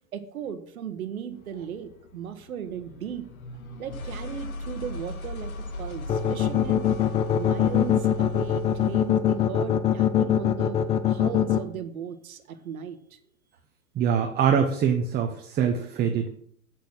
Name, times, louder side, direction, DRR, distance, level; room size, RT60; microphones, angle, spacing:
voice 1, 0.1-3.2 3.8-6.9 7.3-10.8 11.1-13.2, right 8 dB, 80° right, 10 dB, 1.3 m, -36 dB
sound 1, 1.3-9.2, left 2 dB, 85° left, 1.7 m, -38 dB
sound 2, 6.1-11.6, left 10 dB, 15° left, 0.4 m, -22 dB
voice 2, 14.0-16.3, right 7 dB, 25° right, 5 dB, 0.9 m, -24 dB
8.2 x 6.6 x 6.1 m, 0.67 s
hypercardioid pair, 115°, 42 cm